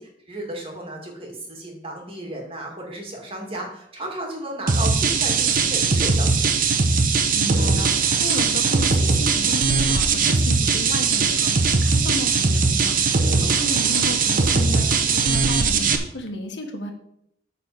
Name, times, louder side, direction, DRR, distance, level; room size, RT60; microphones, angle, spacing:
voice 1, 0.0-6.5, right 1 dB, 30° right, 0 dB, 2.1 m, -34 dB
sound 1, 4.7-16.0, right 4 dB, 50° right, 0.9 m, -20 dB
voice 2, 7.3-16.9, left 1 dB, 80° left, 3 dB, 1.5 m, -33 dB
9.1 x 4.1 x 6.8 m, 0.73 s
head